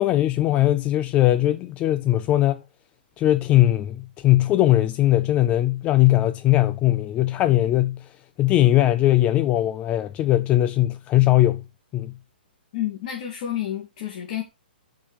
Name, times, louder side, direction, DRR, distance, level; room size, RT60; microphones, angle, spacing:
voice 1, 0.0-2.6 3.2-8.1 8.4-11.6 11.9-12.1, left 14 dB, 20° left, 0.4 m, -20 dB
voice 2, 12.7-14.4, left 11 dB, 45° left, 2.5 m, -29 dB
6.9 x 5.8 x 5.0 m
figure-of-eight pair, 125°, 6 cm